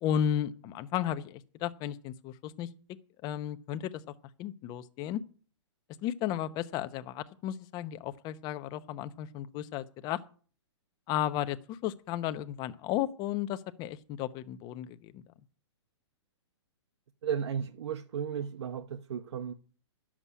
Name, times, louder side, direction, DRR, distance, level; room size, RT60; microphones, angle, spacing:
voice 1, 0.0-2.7 3.2-3.9 4.4-5.2 6.0-10.2 11.1-15.2, left 11 dB, 25° left, 0.9 m, -34 dB
voice 2, 17.2-19.5, right 8 dB, 70° right, 1.0 m, -34 dB
11.0 x 7.4 x 8.4 m
hypercardioid pair, 140°, 15 cm